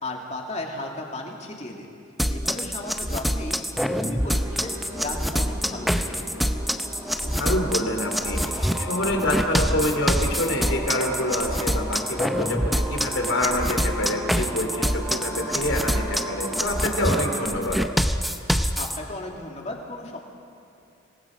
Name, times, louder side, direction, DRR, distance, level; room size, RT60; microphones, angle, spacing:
voice 1, 0.0-1.9 2.3-3.6 3.9-6.2 18.8-20.2, left 2 dB, 35° left, 0 dB, 2.5 m, -35 dB
sound 1, 2.2-19.0, equal, ahead, 0.6 m, -25 dB
sound 2, 4.2-17.5, equal, 15° right, 3.7 m, -36 dB
voice 2, 7.2-17.8, left 1 dB, 75° left, 3 dB, 3.1 m, -27 dB
26.0 x 19.0 x 5.2 m, 2.7 s
head